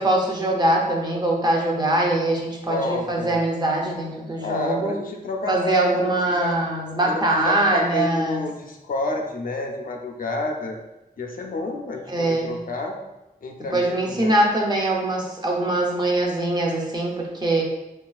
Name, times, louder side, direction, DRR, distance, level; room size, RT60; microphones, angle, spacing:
voice 1, 0.0-4.9 5.5-8.4 12.1-12.6 13.7-17.6, right 1 dB, 25° right, -1 dB, 0.5 m, -22 dB
voice 2, 2.7-3.4 4.4-6.6 7.0-10.8 11.2-13.0 13.4-14.4, left 2 dB, 65° left, 2 dB, 0.4 m, -29 dB
3.1 x 2.3 x 2.3 m, 0.98 s
wide cardioid pair, 110°, 16 cm